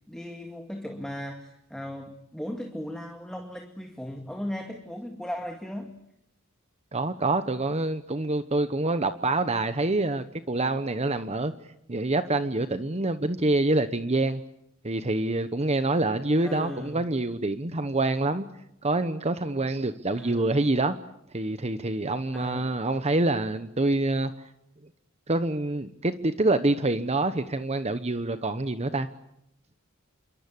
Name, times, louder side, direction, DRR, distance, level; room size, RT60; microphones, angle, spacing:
voice 1, 0.1-6.0 16.4-17.0 20.2-20.6 22.3-22.7, equal, 5° left, 3 dB, 2.2 m, -37 dB
voice 2, 6.9-11.5 11.9-14.4 14.8-18.4 18.8-21.0 21.3-24.5 25.3-29.1, right 2 dB, 30° right, 11 dB, 1.1 m, -26 dB
28.0 x 23.5 x 8.4 m, 0.79 s
head